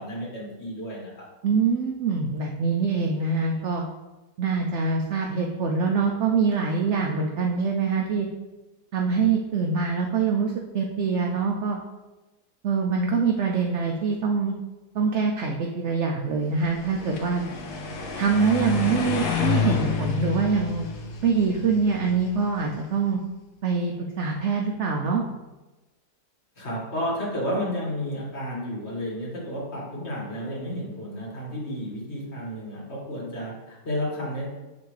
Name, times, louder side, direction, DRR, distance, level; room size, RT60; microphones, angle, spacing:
voice 1, 0.0-1.3 26.6-34.5, equal, 40° left, -4 dB, 1.9 m, -32 dB
voice 2, 1.4-3.8 4.4-8.3 8.9-11.8 12.6-14.5 14.9-17.4 18.2-20.8 21.2-23.2 23.6-25.2, right 5 dB, 70° right, 1 dB, 0.7 m, -24 dB
sound 1, 16.6-22.8, left 6 dB, 75° left, 1.3 m, -29 dB
9.3 x 3.4 x 3.2 m, 1.1 s
omnidirectional pair, 1.8 m